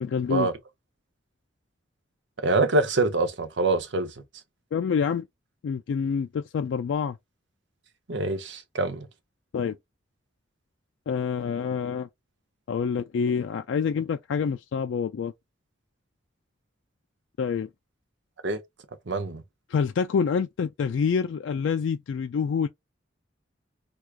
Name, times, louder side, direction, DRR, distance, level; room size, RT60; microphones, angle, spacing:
voice 1, 0.0-0.5 4.7-5.3 5.6-7.2 9.5-9.8 11.1-12.1 12.7-15.3 17.4-17.7 19.7-22.7, left 6 dB, 75° left, 0.3 m, -27 dB
voice 2, 2.4-4.1 8.1-9.1 18.4-18.6 19.1-19.4, right 2 dB, 65° right, 0.7 m, -25 dB
4.6 x 2.3 x 2.4 m
head